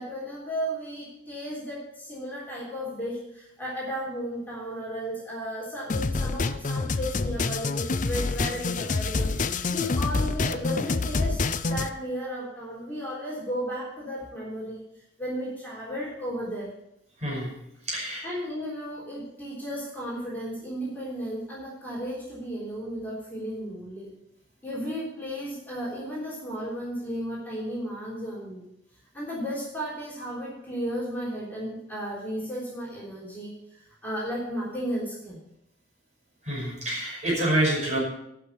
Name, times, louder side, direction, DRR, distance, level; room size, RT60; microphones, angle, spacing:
voice 1, 0.0-14.8 15.2-16.7 18.2-24.1 24.6-28.7 29.1-35.4, equal, 10° left, -7 dB, 3.6 m, -34 dB
sound 1, 5.9-11.9, left 3 dB, 40° left, 0.5 m, -27 dB
voice 2, 17.9-18.3 36.5-38.0, right 1 dB, 35° right, -4 dB, 5.6 m, -27 dB
12.0 x 6.2 x 8.5 m, 0.79 s
head